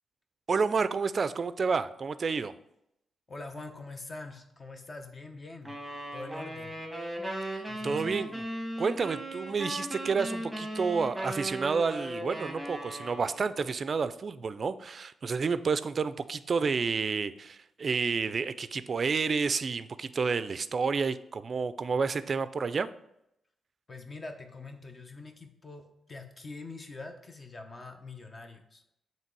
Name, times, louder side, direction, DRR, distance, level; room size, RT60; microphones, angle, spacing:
voice 1, 0.5-2.5 7.4-8.4 8.8-22.9, right 5 dB, 50° right, 14 dB, 0.3 m, -30 dB
voice 2, 3.3-5.7 6.1-6.8 7.7-8.2 23.9-25.8 26.1-28.8, left 3 dB, 35° left, 5 dB, 0.9 m, -44 dB
sound 1, 5.6-13.6, right 1 dB, 5° right, 1.3 m, -37 dB
7.4 x 3.1 x 4.6 m, 0.81 s
cardioid pair, 85°, 0 cm